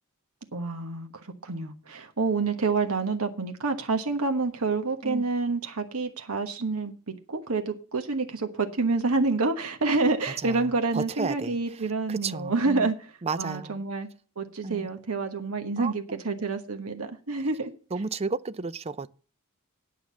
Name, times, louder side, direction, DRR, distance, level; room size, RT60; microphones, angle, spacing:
voice 1, 0.5-14.1 14.4-17.7, right 3 dB, 85° right, 1.3 m, -28 dB
voice 2, 10.4-11.6 12.1-12.9 13.2-13.9 14.6-14.9 15.8-16.4 17.9-19.1, right 4 dB, 30° right, 0.4 m, -33 dB
9.4 x 6.3 x 7.2 m
head